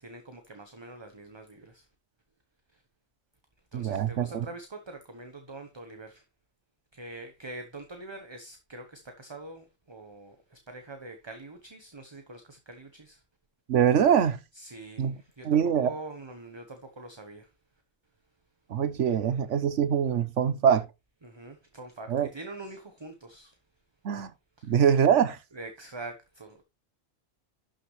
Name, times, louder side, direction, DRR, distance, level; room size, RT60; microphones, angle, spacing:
voice 1, 0.0-1.9 2.7-2.8 3.7-6.2 6.9-13.2 14.5-17.5 21.2-23.6 24.6-24.8 25.5-26.6, right 2 dB, 25° right, 1.0 m, -44 dB
voice 2, 3.7-4.4 13.7-14.4 15.0-15.1 15.4-15.9 18.7-20.9 22.1-22.3 24.0-24.3 24.6-25.4, right 8 dB, 70° right, 1.2 m, -23 dB
12.0 x 6.3 x 3.2 m
omnidirectional pair, 1.3 m